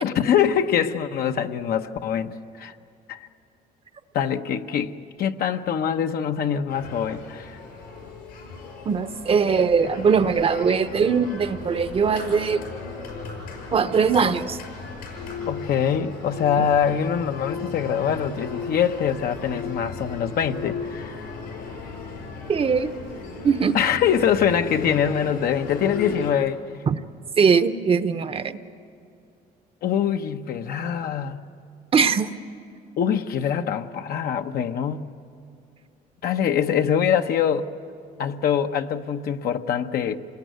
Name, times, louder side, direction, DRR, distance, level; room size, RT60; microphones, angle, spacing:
voice 1, 0.0-2.7 3.1-3.3 4.1-7.6 15.5-21.2 23.7-26.6 29.8-31.4 33.0-35.0 36.2-37.7 38.2-40.1, left 8 dB, 65° left, 7 dB, 1.0 m, -24 dB
sound 1, 6.7-26.3, left 4 dB, 90° left, 6.5 m, -36 dB
voice 2, 8.8-12.6 13.7-14.6 22.5-22.9 23.4-23.8 26.9-27.0 27.4-28.6 31.9-32.3, right 6 dB, 35° right, 12 dB, 0.8 m, -21 dB
26.5 x 20.5 x 9.3 m, 2.5 s
cardioid pair, 110°, 17 cm